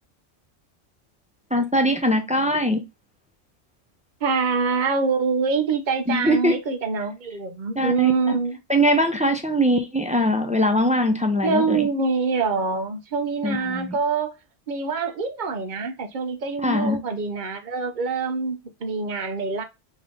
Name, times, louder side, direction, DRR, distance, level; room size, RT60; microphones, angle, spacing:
voice 1, 1.5-2.8 6.1-6.5 7.8-8.1 8.7-11.9 13.4-13.9 16.6-17.0, equal, 10° right, 0.3 m, -21 dB
voice 2, 4.2-8.6 11.4-14.4 14.7-19.6, right 4 dB, 45° right, 0.8 m, -25 dB
3.7 x 3.1 x 3.7 m
omnidirectional pair, 1.3 m